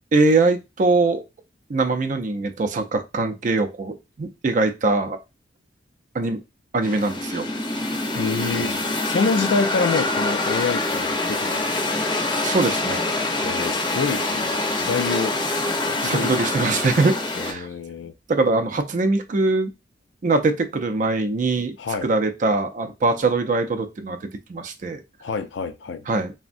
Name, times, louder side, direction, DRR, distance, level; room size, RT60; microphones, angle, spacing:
voice 1, 0.1-1.2 1.7-5.2 6.1-6.4 6.7-7.5 7.7-7.8 12.4-13.0 16.0-17.2 17.4-17.7 18.3-19.7 20.2-21.7 22.0-25.0 26.1-26.3, right 3 dB, 45° right, 0.4 m, -22 dB
sound 1, 6.8-17.5, left 2 dB, 25° left, 0.6 m, -25 dB
voice 2, 8.1-11.7 13.4-15.4 15.9-16.3 17.4-18.1 21.8-22.1 25.2-26.0, left 4 dB, 75° left, 0.4 m, -27 dB
3.4 x 2.1 x 2.5 m
head